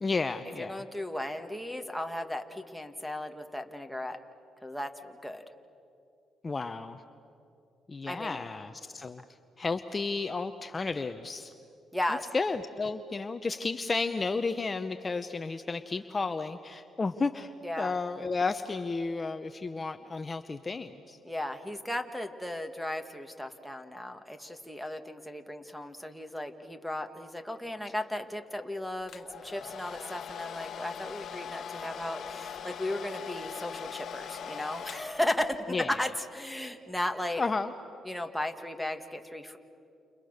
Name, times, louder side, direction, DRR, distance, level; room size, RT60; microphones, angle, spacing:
voice 1, 0.0-0.8 6.4-7.0 7.9-9.2 9.6-11.5 12.3-17.5 17.8-21.2 35.7-35.9 37.4-37.7, left 4 dB, 30° left, 9 dB, 0.8 m, -32 dB
voice 2, 0.6-4.2 4.6-5.4 8.1-8.4 11.9-12.2 17.6-17.9 21.2-37.4 38.0-39.6, left 1 dB, ahead, 4 dB, 1.8 m, -35 dB
Domestic sounds home sounds, 29.1-35.8, left 7 dB, 60° left, 1.4 m, -41 dB
29.5 x 29.5 x 6.6 m, 2.7 s
cardioid pair, 90°, 0 cm